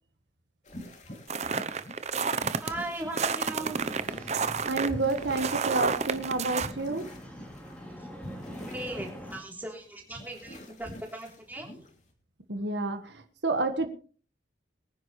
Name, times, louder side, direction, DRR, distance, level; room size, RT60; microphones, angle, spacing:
sound 1, 0.6-12.1, equal, 40° left, 2.8 m, -46 dB
sound 2, 1.3-2.7 3.1-6.7, right 5 dB, 35° right, 0.8 m, -30 dB
voice 1, 2.6-3.9 8.0-8.1 8.6-11.8, right 1 dB, 10° right, 0 dB, 3.4 m, -38 dB
sound 3, 3.5-9.4, equal, 5° left, 3.3 m, -44 dB
voice 2, 4.3-7.1 12.5-13.9, right 3 dB, 75° right, 7 dB, 1.5 m, -30 dB
23.5 x 10.0 x 3.2 m, 0.40 s
head